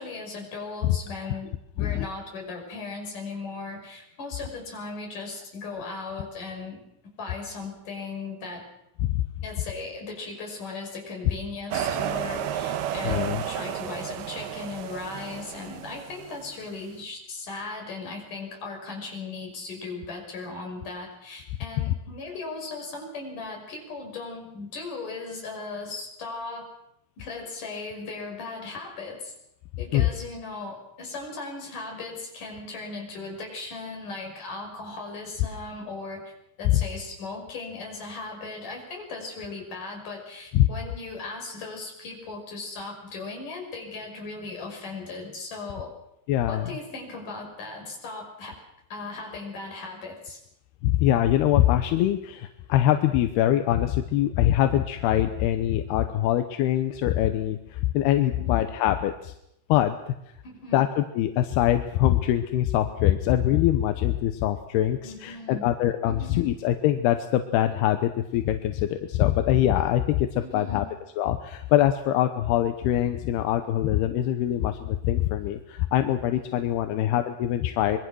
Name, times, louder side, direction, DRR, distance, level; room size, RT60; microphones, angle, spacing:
voice 1, 0.0-1.5 1.7-6.9 7.2-8.6 9.4-26.7 27.2-29.3 29.8-36.3 36.6-45.9 46.5-48.5 48.9-50.4 58.2-58.5 60.4-60.8 65.0-65.7 66.1-66.5 70.4-70.9, left 3 dB, 55° left, 1 dB, 7.3 m, -37 dB
sound 1, 11.7-16.7, right 10 dB, 85° right, 3.1 m, -32 dB
voice 2, 13.0-13.4 29.9-30.1 36.7-36.8 40.5-40.7 46.3-46.7 50.8-59.3 59.7-60.1 60.7-70.9 71.2-78.0, left 12 dB, 85° left, 8 dB, 3.0 m, -23 dB
25.5 x 22.0 x 6.3 m, 0.80 s
omnidirectional pair, 4.5 m